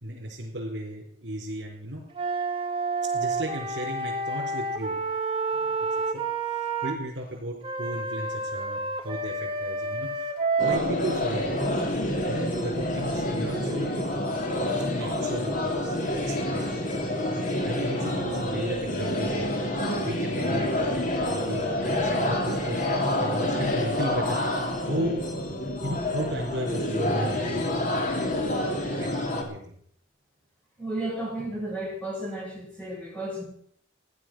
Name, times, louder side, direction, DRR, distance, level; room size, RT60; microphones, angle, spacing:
voice 1, 0.0-2.5 3.0-5.1 5.6-5.8 6.1-10.4 10.6-11.6 12.3-14.0 14.9-16.0 16.3-16.7 17.6-19.5 19.9-20.7 21.1-25.4 25.8-27.8 28.5-29.7, equal, 70° right, -4 dB, 4.3 m, -35 dB
Wind instrument woodwind instrument, 2.1-7.0 7.6-10.8, right 3 dB, 30° right, 1.9 m, -29 dB
sound 1, 10.6-29.4, left 1 dB, 45° left, 3.2 m, -28 dB
voice 2, 30.8-33.4, right 1 dB, 5° left, -3 dB, 7.0 m, -33 dB
16.5 x 11.0 x 6.3 m, 0.64 s
head